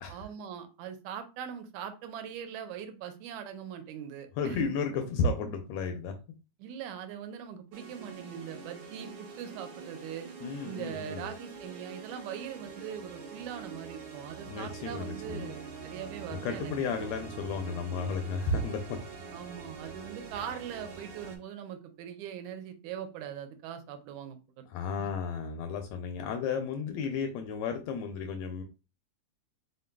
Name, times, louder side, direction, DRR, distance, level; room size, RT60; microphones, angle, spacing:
voice 1, 0.1-4.7 6.6-10.3 10.6-16.8 19.3-24.7 25.0-25.1, right 8 dB, 85° right, 7 dB, 2.0 m, -41 dB
voice 2, 4.4-6.1 10.4-11.3 14.5-15.5 16.4-18.8 24.7-28.6, left 4 dB, 80° left, 6 dB, 1.6 m, -33 dB
sound 1, 7.7-21.4, right 5 dB, 65° right, 1.3 m, -45 dB
4.5 x 3.8 x 2.2 m, 0.31 s
omnidirectional pair, 3.3 m